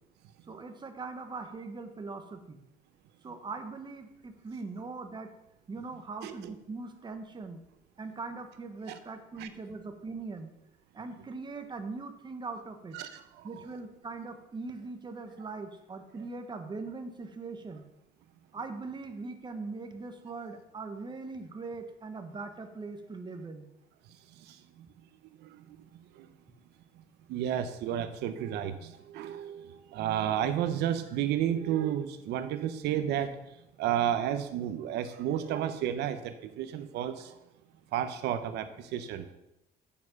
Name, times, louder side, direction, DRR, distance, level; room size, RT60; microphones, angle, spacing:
voice 1, 0.5-2.6 3.2-5.3 5.7-7.6 8.0-10.5 10.9-13.0 13.4-17.8 18.5-23.7, right 3 dB, 25° right, 6 dB, 1.3 m, -41 dB
voice 2, 6.2-6.5 8.9-9.0 9.4-9.5 12.9-13.5 24.5-24.6 25.4-25.6 26.2-26.3 27.3-33.4 33.8-37.3 37.9-39.3, right 10 dB, 80° right, 10 dB, 0.9 m, -32 dB
8.5 x 7.2 x 5.4 m, 0.88 s
cardioid pair, 110°, 17 cm